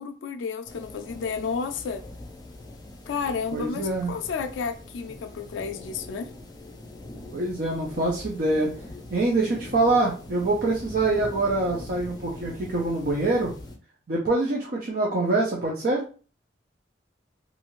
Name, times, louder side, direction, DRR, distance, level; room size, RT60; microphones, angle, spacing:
voice 1, 0.0-2.0 3.1-6.3, left 5 dB, 85° left, 0.3 m, -31 dB
sound 1, 0.7-13.8, left 2 dB, 20° left, 0.5 m, -43 dB
voice 2, 3.5-4.1 7.3-8.7 9.1-13.5 14.1-16.0, right 2 dB, 50° right, 0.6 m, -25 dB
2.6 x 2.4 x 3.0 m
head